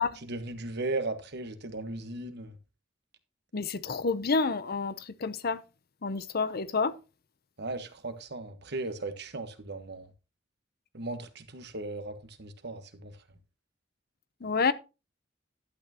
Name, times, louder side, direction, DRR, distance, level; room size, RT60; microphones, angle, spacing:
voice 1, 0.2-2.5 7.6-10.1 10.9-13.1, right 2 dB, 60° right, 1.4 m, -37 dB
voice 2, 3.5-5.6 6.0-7.0 14.4-14.7, left 4 dB, 50° left, 0.7 m, -29 dB
11.5 x 8.8 x 2.9 m
head